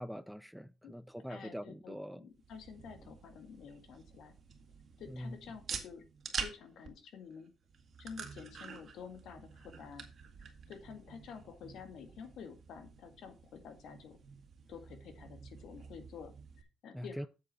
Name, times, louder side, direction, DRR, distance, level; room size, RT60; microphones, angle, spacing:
voice 1, 0.0-2.3 5.1-5.4 16.9-17.3, equal, ahead, 0.5 m, -43 dB
voice 2, 1.3-4.3 5.0-6.0 6.4-7.5 8.0-10.0 10.4-14.2 14.7-17.3, left 6 dB, 75° left, 1.8 m, -50 dB
sound 1, 2.3-16.6, right 6 dB, 55° right, 1.8 m, -48 dB
7.9 x 7.6 x 4.1 m
cardioid pair, 90°, 0 cm